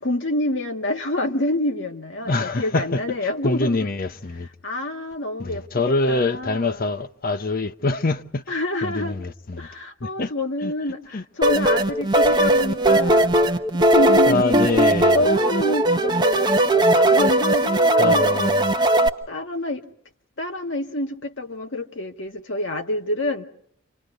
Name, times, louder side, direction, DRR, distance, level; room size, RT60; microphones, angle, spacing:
voice 1, 0.0-3.9 4.6-6.8 8.5-9.2 9.6-14.8 15.1-18.3 19.3-19.8 20.4-23.4, left 1 dB, 60° left, 1.7 m, -27 dB
voice 2, 2.3-3.0 3.4-4.5 5.4-8.4 8.8-9.6 10.2-10.3 10.6-10.7 11.1-11.2 14.3-15.2 18.0-18.7, left 2 dB, 45° left, 0.7 m, -24 dB
sound 1, 11.4-19.1, right 1 dB, 20° right, 0.9 m, -18 dB
30.0 x 26.0 x 3.8 m
head